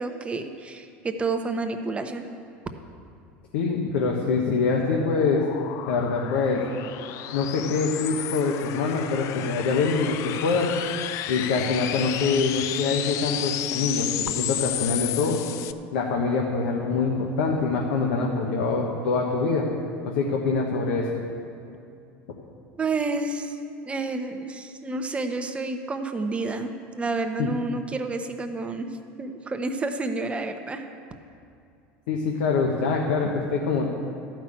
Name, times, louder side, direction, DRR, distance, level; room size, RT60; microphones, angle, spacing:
voice 1, 0.0-2.3 22.8-23.6 23.9-28.9 29.2-30.9, right 3 dB, 20° right, 6 dB, 1.0 m, -29 dB
voice 2, 3.5-5.4 5.9-6.6 7.3-10.7 11.3-14.1 14.4-15.4 15.9-19.6 20.0-21.0 27.4-27.5 32.1-33.9, left 4 dB, 80° left, 0 dB, 1.2 m, -24 dB
sound 1, 4.4-15.7, left 12 dB, 55° left, 0.4 m, -32 dB
12.0 x 6.0 x 8.6 m, 2.5 s
supercardioid pair, 105°, 6 cm